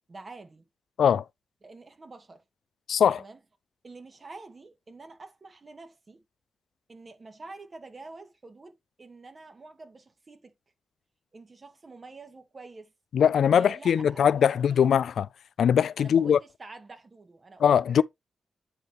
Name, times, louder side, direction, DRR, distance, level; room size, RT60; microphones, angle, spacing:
voice 1, 0.1-0.7 1.6-2.4 3.2-3.4 3.8-6.2 6.9-10.5 11.3-12.9 13.5-14.8 16.0-18.0, right 3 dB, 40° right, 2.2 m, -47 dB
voice 2, 2.9-3.2 13.1-15.3 15.6-16.4 17.6-18.0, left 8 dB, 80° left, 0.4 m, -21 dB
9.7 x 4.8 x 3.2 m
cardioid pair, 70°, 0 cm